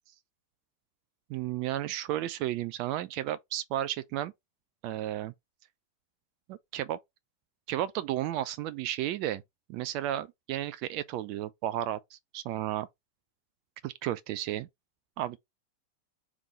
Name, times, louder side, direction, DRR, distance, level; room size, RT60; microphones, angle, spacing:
voice 1, 1.3-4.3 4.8-5.3 6.5-7.0 7.7-9.4 9.7-12.9 13.8-14.7 15.2-15.4, right 12 dB, 45° right, 0.4 m, -33 dB
3.5 x 3.5 x 4.0 m
figure-of-eight pair, 90°, 0 cm